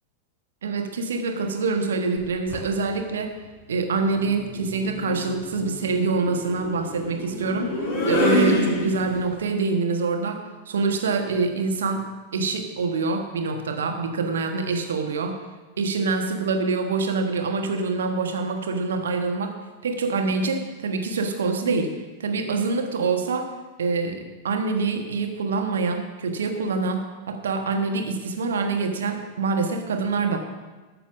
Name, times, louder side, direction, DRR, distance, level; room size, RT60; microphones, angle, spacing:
voice 1, 0.6-3.3 3.7-12.1 12.3-15.4 15.8-19.5 19.8-21.9 22.2-23.5 23.8-30.4, right 4 dB, 65° right, 5 dB, 1.3 m, -25 dB
sound 1, 2.2-2.7 4.1-9.4, left 1 dB, 40° left, 4.0 m, -27 dB
13.0 x 6.8 x 6.1 m, 1.3 s
figure-of-eight pair, 90°, 0 cm